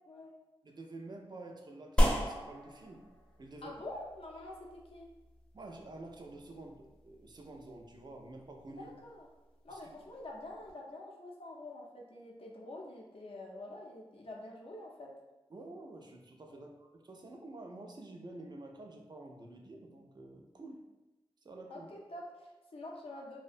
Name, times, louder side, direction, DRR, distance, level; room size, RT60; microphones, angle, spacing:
voice 1, 0.6-3.0 3.4-3.8 5.5-8.9 9.7-9.8 15.5-20.8 21.4-21.9, right 2 dB, 45° right, 2 dB, 0.3 m, -49 dB
sound 1, 2.0-10.7, equal, 10° left, 0.5 m, -37 dB
voice 2, 3.6-5.1 8.8-9.3 9.6-15.1 16.5-16.7 21.7-23.4, left 1 dB, 70° left, -1 dB, 0.5 m, -47 dB
2.5 x 2.1 x 2.4 m, 1.1 s
wide cardioid pair, 70°, 10 cm